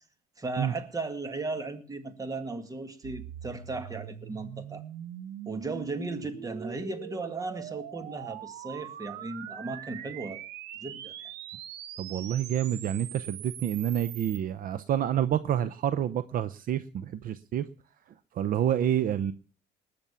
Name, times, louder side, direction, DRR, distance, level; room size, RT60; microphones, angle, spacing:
voice 1, 0.4-4.8 5.5-10.4 10.8-11.1, right 3 dB, 20° right, 2.0 m, -36 dB
sound 1, 3.0-14.4, right 11 dB, 90° right, 1.1 m, -42 dB
voice 2, 12.0-17.7 18.3-19.3, right 10 dB, 55° right, 0.7 m, -28 dB
19.5 x 7.0 x 7.0 m
cardioid pair, 110°, 17 cm